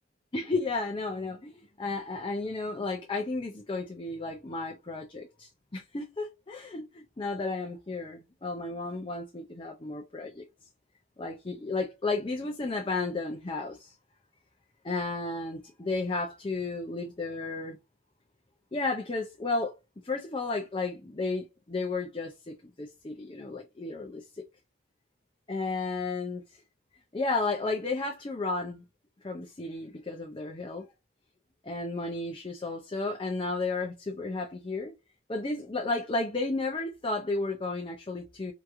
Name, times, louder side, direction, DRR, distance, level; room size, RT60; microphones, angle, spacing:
voice 1, 0.3-10.4 11.2-13.9 14.8-17.8 18.7-19.7 20.0-24.2 25.5-26.6 27.1-28.8 29.2-30.9 31.6-34.9 35.3-38.5, left 3 dB, 25° left, 0.5 m, -33 dB
4.7 x 3.1 x 2.5 m
head